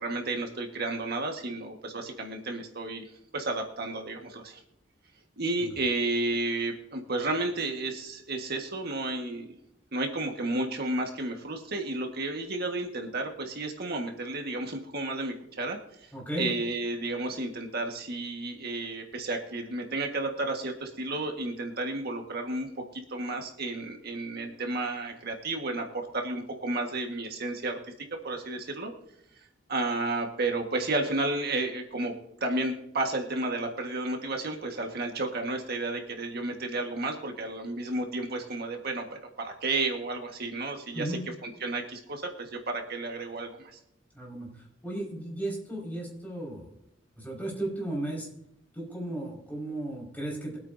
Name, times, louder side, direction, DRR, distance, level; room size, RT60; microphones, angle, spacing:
voice 1, 0.0-3.1 3.3-4.6 5.4-9.5 9.9-16.1 16.4-28.9 29.4-32.1 32.4-39.0 39.4-43.8, right 2 dB, 55° right, 2 dB, 1.6 m, -32 dB
voice 2, 16.1-16.5 40.9-41.2 44.1-46.7 47.2-48.3 48.7-50.6, right 1 dB, 10° left, -3 dB, 5.3 m, -35 dB
23.5 x 8.9 x 2.7 m, 0.82 s
head